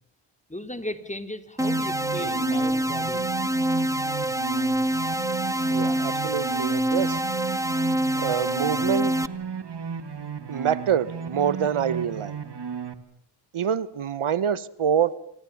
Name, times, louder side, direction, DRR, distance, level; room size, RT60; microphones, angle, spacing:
voice 1, 0.5-3.4, left 1 dB, 15° left, 3.5 m, -36 dB
sound 1, 1.6-9.3, right 1 dB, 5° right, 1.3 m, -26 dB
sound 2, 1.6-12.9, right 6 dB, 55° right, 2.4 m, -35 dB
voice 2, 5.7-7.2 8.1-9.1 10.5-12.4 13.5-15.1, right 8 dB, 80° right, 1.1 m, -26 dB
28.5 x 27.5 x 7.1 m
cardioid pair, 55°, 49 cm